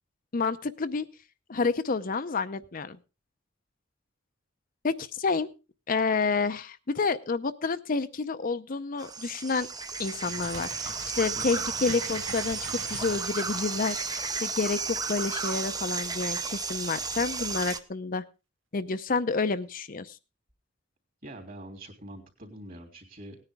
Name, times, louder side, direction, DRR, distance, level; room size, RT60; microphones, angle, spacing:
voice 1, 0.3-1.1 1.5-3.0 4.8-5.5 5.9-9.7 10.0-18.2 18.7-20.2, left 4 dB, 45° left, 10 dB, 0.6 m, -29 dB
sound 1, 9.0-17.8, right 5 dB, 20° right, 0.7 m, -33 dB
Bird, 10.0-15.5 15.8-15.9, right 4 dB, 85° right, 1.1 m, -45 dB
voice 2, 11.3-11.7 21.2-23.4, right 1 dB, 50° right, 2 dB, 3.3 m, -44 dB
18.0 x 9.9 x 3.5 m, 0.30 s
head